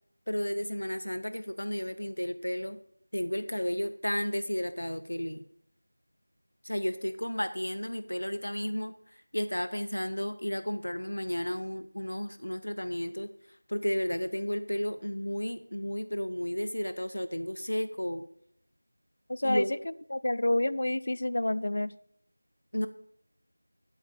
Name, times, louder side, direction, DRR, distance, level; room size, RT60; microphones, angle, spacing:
voice 1, 0.3-2.8 3.1-5.4 6.6-13.3 13.7-18.2 19.4-19.7 22.7-22.9, equal, 85° left, 11 dB, 0.6 m, -33 dB
voice 2, 19.3-19.7 20.1-21.9, left 1 dB, 50° left, 18 dB, 0.3 m, -28 dB
9.9 x 8.6 x 3.4 m, 0.69 s
figure-of-eight pair, 175°, 0 cm